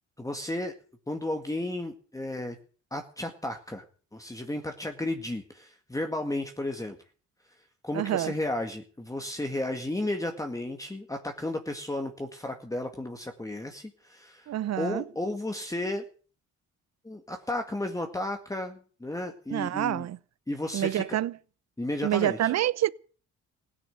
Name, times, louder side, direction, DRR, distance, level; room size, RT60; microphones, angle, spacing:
voice 1, 0.2-0.7 1.1-2.6 2.9-3.8 4.1-7.0 7.8-14.5 14.8-16.0 17.0-20.1 20.5-21.2 21.8-22.5, left 1 dB, 10° left, 1.9 m, -33 dB
voice 2, 7.9-8.3 14.5-15.0 19.5-20.2 20.7-21.3 22.0-22.9, right 12 dB, 60° right, 0.7 m, -27 dB
16.5 x 9.7 x 7.9 m
cardioid pair, 90°, 30 cm